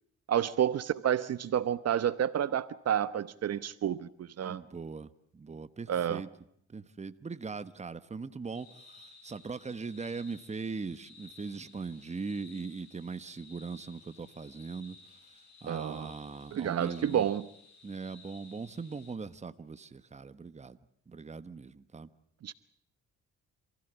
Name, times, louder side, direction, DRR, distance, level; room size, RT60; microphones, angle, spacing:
voice 1, 0.3-4.6 5.9-6.2 15.7-16.1 16.5-17.5 22.4-22.5, right 10 dB, 55° right, 14 dB, 0.9 m, -30 dB
voice 2, 4.4-6.3 6.7-17.3 17.8-20.8 21.1-22.1, right 4 dB, 20° right, 12 dB, 1.2 m, -40 dB
sound 1, 8.5-19.2, left 4 dB, 65° left, 6.5 m, -56 dB
27.0 x 16.0 x 8.1 m, 0.68 s
cardioid pair, 90°, 30 cm